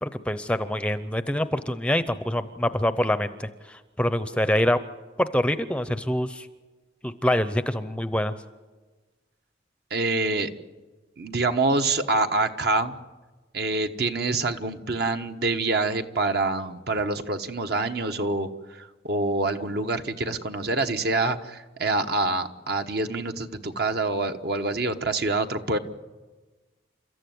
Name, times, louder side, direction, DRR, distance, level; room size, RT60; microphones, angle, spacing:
voice 1, 0.0-4.8 5.2-6.5 7.0-8.3, left 1 dB, 5° left, 11 dB, 0.6 m, -25 dB
voice 2, 9.9-10.5 11.2-13.0 13.5-25.8, right 3 dB, 60° right, 6 dB, 1.2 m, -26 dB
29.5 x 14.0 x 9.4 m, 1.3 s
head